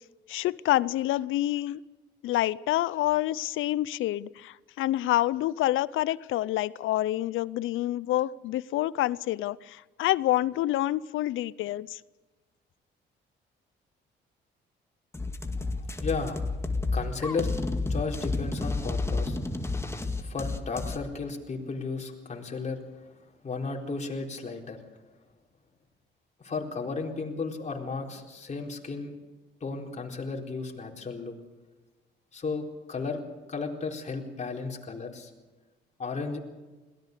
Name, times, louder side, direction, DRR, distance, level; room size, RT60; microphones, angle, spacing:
voice 1, 0.3-1.8 2.2-12.0, left 15 dB, 85° left, 20 dB, 0.6 m, -27 dB
sound 1, 15.1-21.0, left 3 dB, 15° left, 2.0 m, -30 dB
voice 2, 15.6-16.4 16.9-17.5 17.9-19.4 20.2-22.8 23.4-24.8 26.4-29.1 29.6-31.3 32.3-32.6 32.9-33.2 33.5-35.3 36.0-36.4, left 4 dB, 35° left, 1 dB, 4.1 m, -34 dB
22.0 x 17.5 x 6.7 m, 1.2 s
cardioid pair, 90°, 20 cm